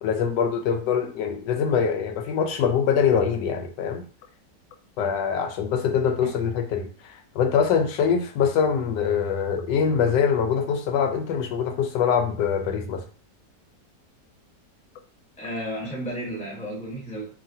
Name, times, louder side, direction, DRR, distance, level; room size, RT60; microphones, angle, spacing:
voice 1, 0.0-4.0 5.0-13.0, left 7 dB, 80° left, 6 dB, 1.2 m, -24 dB
voice 2, 15.4-17.3, equal, 5° left, -5 dB, 1.0 m, -33 dB
3.0 x 2.5 x 2.6 m, 0.40 s
omnidirectional pair, 1.9 m